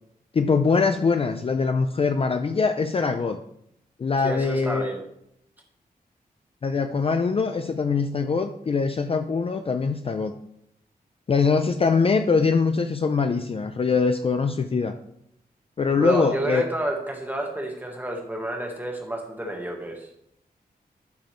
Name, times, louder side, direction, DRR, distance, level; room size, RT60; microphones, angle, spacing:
voice 1, 0.3-3.4 4.0-4.9 6.6-10.3 11.3-15.0 15.8-16.6, left 4 dB, 35° left, 7 dB, 0.4 m, -23 dB
voice 2, 4.2-5.0 15.9-20.1, right 1 dB, 10° right, 1 dB, 1.4 m, -30 dB
11.5 x 5.0 x 3.1 m, 0.74 s
wide cardioid pair, 150°, 16 cm